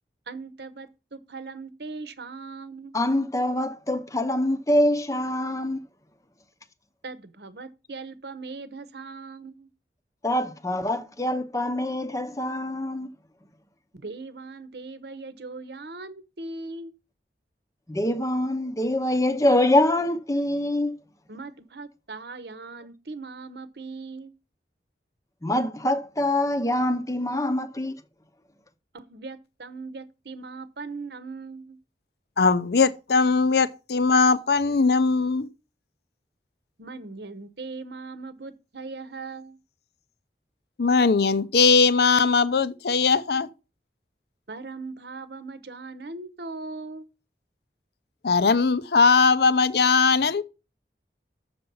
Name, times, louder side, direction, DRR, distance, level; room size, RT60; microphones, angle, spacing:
voice 1, 0.3-2.9 7.0-9.7 13.9-16.9 21.3-24.3 28.9-31.8 36.8-39.6 44.5-47.1, right 3 dB, 75° right, 0.9 m, -39 dB
voice 2, 2.9-5.8 10.2-13.1 17.9-21.0 25.4-28.0, left 1 dB, 20° left, 0.7 m, -24 dB
voice 3, 32.4-35.5 40.8-43.5 48.2-50.4, left 4 dB, 65° left, 0.6 m, -20 dB
6.9 x 6.8 x 5.5 m
head